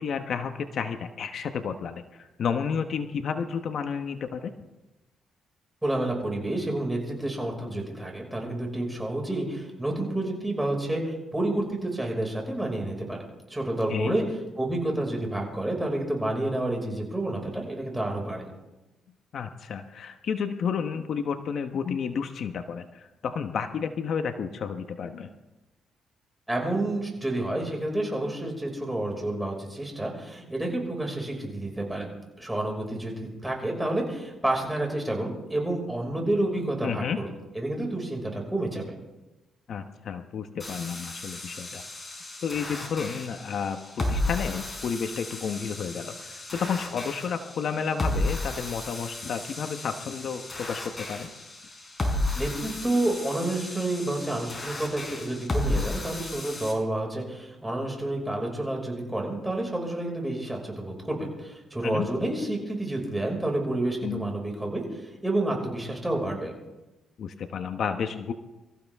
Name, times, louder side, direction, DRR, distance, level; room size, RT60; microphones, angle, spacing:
voice 1, 0.0-4.5 13.9-14.1 19.3-25.3 36.8-37.2 39.7-41.8 42.4-51.3 61.8-62.1 64.0-64.3 67.2-68.3, left 6 dB, 60° left, 7 dB, 1.1 m, -31 dB
voice 2, 5.8-13.2 13.5-14.2 14.6-18.5 26.5-37.3 37.5-38.9 52.4-66.5, right 1 dB, 10° right, 0 dB, 5.7 m, -29 dB
sound 1, 40.6-56.7, left 1 dB, 25° left, 4.9 m, -33 dB
25.0 x 14.5 x 3.6 m, 1.0 s
cardioid pair, 90°, 0 cm